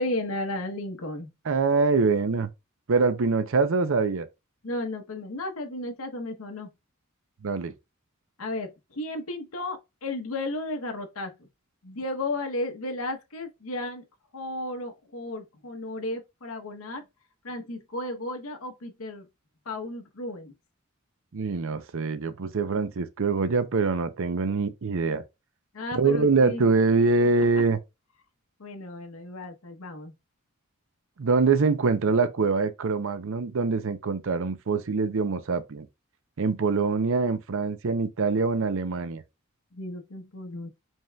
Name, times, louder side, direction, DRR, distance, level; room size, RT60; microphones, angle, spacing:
voice 1, 0.0-1.3 4.6-6.7 8.4-11.5 11.8-14.0 14.3-17.0 17.4-19.3 19.7-20.5 25.7-26.7 28.6-30.1 39.7-40.7, left 2 dB, 70° left, 0.9 m, -34 dB
voice 2, 1.5-2.5 2.9-4.3 7.4-7.7 21.3-25.2 26.0-27.8 31.2-35.9 36.4-39.2, right 4 dB, 65° right, 0.6 m, -24 dB
5.2 x 3.6 x 2.3 m
head